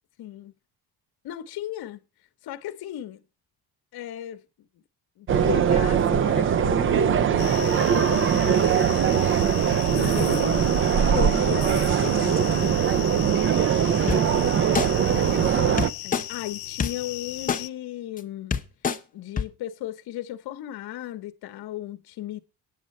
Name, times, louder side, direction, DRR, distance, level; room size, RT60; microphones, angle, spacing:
voice 1, 0.2-0.5 1.2-2.0 2.4-3.2 3.9-4.4 5.2-8.6 9.9-10.7 11.1-13.5 15.1-18.6 19.1-22.4, left 12 dB, 65° left, 1.0 m, -35 dB
sound 1, 5.3-15.9, right 8 dB, 30° right, 0.4 m, -21 dB
sound 2, 7.4-17.7, left 16 dB, 85° left, 0.7 m, -37 dB
sound 3, 14.1-14.2 14.7-14.9 15.8-16.2 16.8-16.9 17.5-17.6 18.2-18.3 18.5-19.0 19.4-19.5, left 6 dB, 20° left, 0.7 m, -24 dB
9.4 x 7.5 x 5.3 m
cardioid pair, 160°, 40 cm